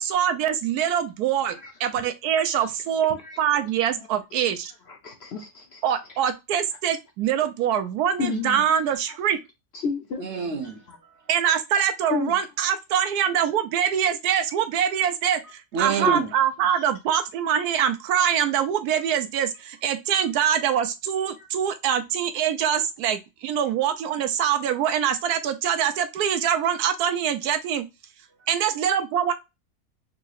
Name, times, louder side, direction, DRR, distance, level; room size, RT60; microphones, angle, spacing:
voice 1, 0.0-4.7 5.8-9.4 11.3-27.8 28.5-29.3, right 9 dB, 85° right, 1.1 m, -24 dB
voice 2, 4.9-6.0 8.2-8.6 9.7-10.3 12.1-12.4 16.0-16.3 24.2-24.3, left 5 dB, 55° left, 0.7 m, -30 dB
voice 3, 10.2-11.6 15.7-16.3 28.4-28.5, right 6 dB, 55° right, 0.9 m, -30 dB
3.7 x 3.0 x 2.3 m
omnidirectional pair, 1.6 m